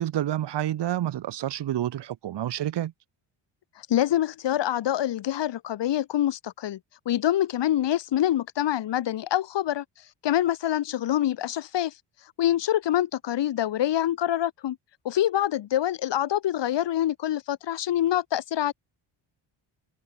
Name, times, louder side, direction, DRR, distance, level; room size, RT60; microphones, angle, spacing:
voice 1, 0.0-2.9, right 12 dB, 60° right, 1.8 m, -28 dB
voice 2, 3.9-6.8 7.1-9.8 10.2-11.9 12.4-14.8 15.0-18.7, left 12 dB, 60° left, 2.5 m, -25 dB
cardioid pair, 130°, 47 cm